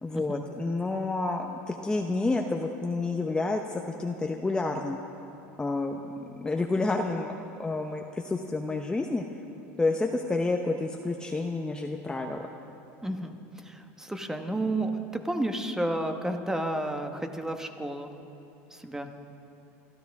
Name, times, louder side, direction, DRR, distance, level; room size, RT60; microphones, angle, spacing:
voice 1, 0.0-5.0 5.6-7.3 7.6-9.3 9.8-12.4, left 3 dB, 10° left, 2 dB, 0.8 m, -29 dB
voice 2, 13.0-13.4 13.6-18.1 18.7-19.1, right 1 dB, 5° right, 6 dB, 1.2 m, -31 dB
29.0 x 13.0 x 3.6 m, 2.8 s
supercardioid pair, 110°, 7 cm